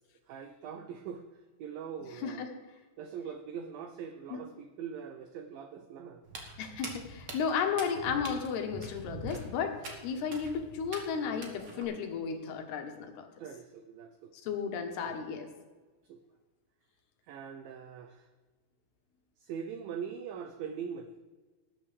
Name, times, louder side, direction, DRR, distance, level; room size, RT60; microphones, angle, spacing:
voice 1, 0.3-2.5 3.0-6.2 13.4-14.3 15.1-15.3 16.0-16.2 17.3-18.3 19.4-21.2, right 7 dB, 85° right, 7 dB, 2.0 m, -42 dB
voice 2, 2.2-2.5 4.3-4.4 6.6-13.3 14.3-15.5, left 6 dB, 75° left, 5 dB, 3.2 m, -34 dB
Walk footsteps, 6.2-11.8, right 2 dB, 55° right, 1.6 m, -45 dB
19.5 x 9.1 x 3.4 m, 1.3 s
omnidirectional pair, 5.0 m